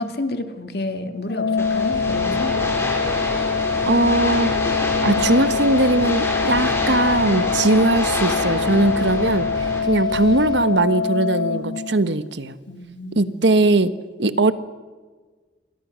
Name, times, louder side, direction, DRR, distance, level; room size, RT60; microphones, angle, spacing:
voice 1, 0.0-2.6 12.7-13.5, left 2 dB, 55° left, 7 dB, 2.2 m, -30 dB
Organ, 1.3-12.3, left 5 dB, 75° left, 1.1 m, -24 dB
sound 1, 1.6-9.8, left 1 dB, 15° left, 5.0 m, -27 dB
sound 2, 1.9-10.6, equal, 25° right, 3.2 m, -36 dB
voice 2, 3.9-4.5 5.0-9.5 9.9-12.6 13.2-13.9 14.2-14.5, right 2 dB, 75° right, 12 dB, 1.3 m, -19 dB
28.5 x 23.5 x 6.4 m, 1.4 s
head